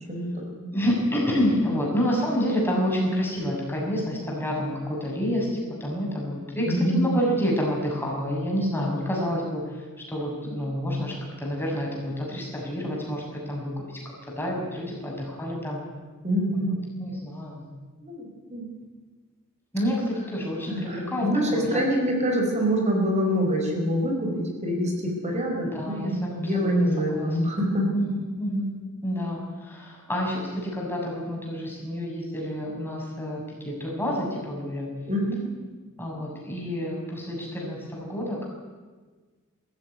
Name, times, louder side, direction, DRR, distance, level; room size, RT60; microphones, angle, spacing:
voice 1, 0.1-0.7 6.7-7.2 16.2-16.8 18.0-18.7 20.7-27.9 35.1-35.5, equal, 30° right, 1 dB, 4.9 m, -25 dB
voice 2, 0.7-9.6 10.1-15.8 16.5-16.6 17.0-17.7 19.7-21.8 25.6-27.3 27.9-28.7 29.0-34.9 36.0-38.5, equal, 10° left, -2 dB, 6.5 m, -28 dB
21.5 x 15.0 x 9.8 m, 1.4 s
head